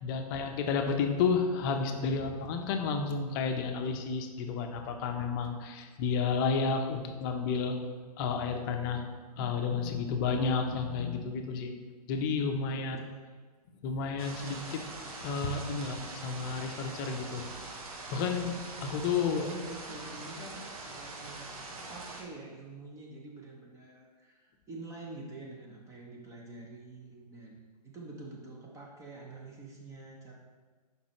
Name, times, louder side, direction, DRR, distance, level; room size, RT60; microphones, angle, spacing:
voice 1, 0.0-7.8 8.2-9.0 9.4-11.7 12.1-13.0 13.8-14.8 15.2-17.4 18.1-19.5, left 5 dB, 30° left, 4 dB, 0.6 m, -31 dB
sound 1, 14.2-22.2, right 3 dB, 60° right, 1.1 m, -43 dB
voice 2, 19.3-30.3, right 2 dB, 15° right, -1 dB, 0.7 m, -47 dB
6.2 x 5.2 x 3.0 m, 1.4 s
hypercardioid pair, 125°, 21 cm